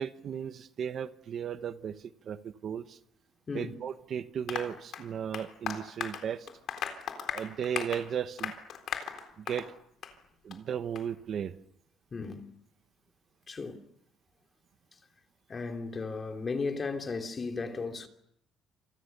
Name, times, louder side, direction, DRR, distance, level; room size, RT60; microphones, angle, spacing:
voice 1, 0.0-1.9 2.3-2.8 3.5-6.4 7.3-8.5 9.5-9.7 10.4-11.5, right 8 dB, 45° right, 1.1 m, -35 dB
voice 2, 3.5-3.8 12.1-12.5 13.5-13.8 15.5-18.1, left 4 dB, 25° left, 2.9 m, -35 dB
Applause, 4.5-9.7 10.0-10.2 10.5-10.6 11.0-11.1, left 8 dB, 55° left, 3.8 m, -37 dB
29.5 x 27.0 x 6.8 m
cardioid pair, 150°, 0 cm